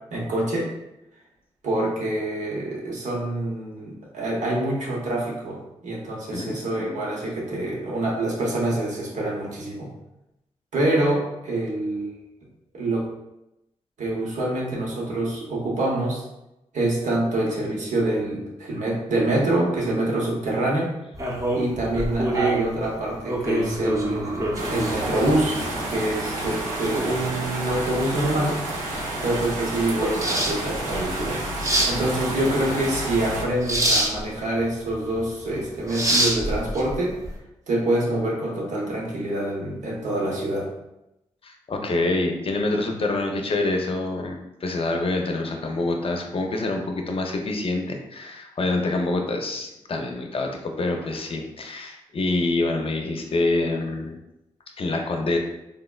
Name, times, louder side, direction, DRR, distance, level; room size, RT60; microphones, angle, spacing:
voice 1, 0.1-0.7 1.6-9.9 10.7-12.1 12.7-13.1 14.0-16.2 16.7-20.9 21.5-25.6 25.9-28.6 29.2-31.4 31.9-37.2 37.7-40.7, right 1 dB, 70° right, -3 dB, 0.9 m, -26 dB
sound 1, 21.1-37.3, right 1 dB, 25° right, 0.7 m, -28 dB
sound 2, 24.5-33.4, right 1 dB, 90° right, 0.5 m, -30 dB
voice 2, 41.4-54.2 54.8-55.4, left 2 dB, 45° left, 3 dB, 0.5 m, -26 dB
3.5 x 2.0 x 2.3 m, 0.89 s
supercardioid pair, 40°, 13 cm